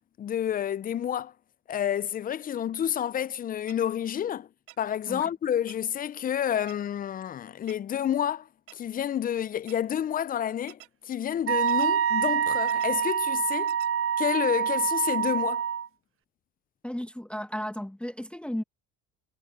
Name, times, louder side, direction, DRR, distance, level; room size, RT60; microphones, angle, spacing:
voice 1, 0.2-1.3 1.7-4.5 4.8-8.5 8.7-13.8 14.2-15.6, left 10 dB, 30° left, 0.4 m, -29 dB
sound 1, 3.7-3.8 4.7-4.8 5.7-5.8 6.7-6.8 7.7-7.8 8.7-8.8 9.7-9.8 10.7-10.9 11.7-11.9 12.7-12.9 13.7-13.9, right 24 dB, 85° right, 3.1 m, -48 dB
Wind instrument woodwind instrument, 11.5-15.9, right 8 dB, 45° right, 0.9 m, -26 dB
voice 2, 16.8-18.6, equal, 5° left, 1.5 m, -34 dB
supercardioid pair, 90°, 31 cm